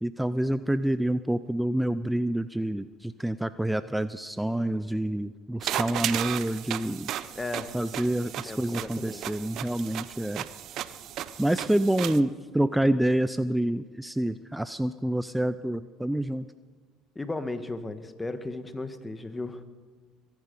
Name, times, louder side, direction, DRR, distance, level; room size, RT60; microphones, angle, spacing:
voice 1, 0.0-7.1 7.7-10.5 11.4-16.4, right 1 dB, 5° right, 14 dB, 0.5 m, -27 dB
sound 1, 5.6-12.2, right 12 dB, 60° right, 0.7 m, -35 dB
voice 2, 7.3-7.7 8.2-9.2 17.1-19.6, left 2 dB, 15° left, 10 dB, 1.5 m, -35 dB
22.5 x 10.5 x 5.5 m, 1.4 s
hypercardioid pair, 75°, 0 cm